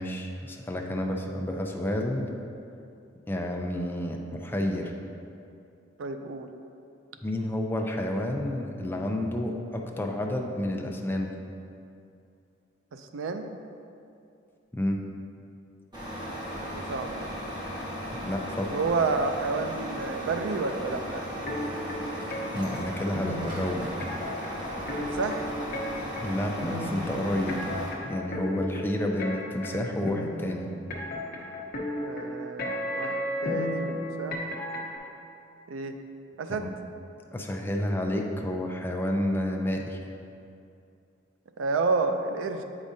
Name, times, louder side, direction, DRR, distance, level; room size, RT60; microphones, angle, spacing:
voice 1, 0.0-2.3 3.3-4.9 7.2-11.4 14.7-15.0 18.2-18.7 22.5-23.9 26.2-27.7 28.0-30.7 36.5-36.7 37.3-40.0, left 1 dB, 10° left, 1 dB, 0.4 m, -30 dB
voice 2, 6.0-6.5 12.9-13.6 16.3-16.4 16.7-17.3 18.7-21.2 25.0-25.4 32.0-34.4 35.7-36.0 36.4-36.7 41.6-42.6, right 4 dB, 85° right, 7 dB, 0.4 m, -30 dB
Truck, 15.9-27.9, equal, 25° right, 1.3 m, -36 dB
sound 1, 21.5-35.0, left 1 dB, 50° left, 0.9 m, -34 dB
8.3 x 4.9 x 2.7 m, 2.5 s
head